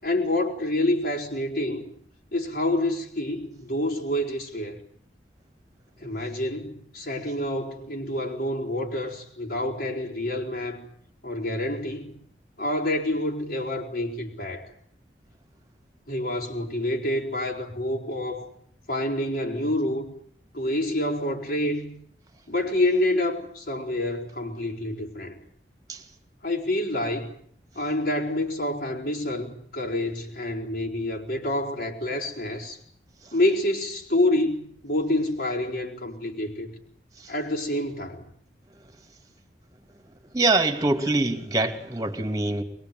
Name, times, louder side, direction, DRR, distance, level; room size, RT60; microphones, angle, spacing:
voice 1, 0.0-1.9 2.3-4.8 6.0-10.8 11.2-12.2 12.6-14.7 16.1-18.5 18.9-20.1 20.5-21.9 22.5-25.4 26.4-27.3 27.8-32.8 33.3-36.7 37.3-38.3, left 1 dB, 60° left, -1 dB, 5.2 m, -27 dB
voice 2, 40.3-42.6, right 2 dB, 20° right, 7 dB, 2.8 m, -24 dB
23.0 x 22.5 x 9.5 m, 0.63 s
head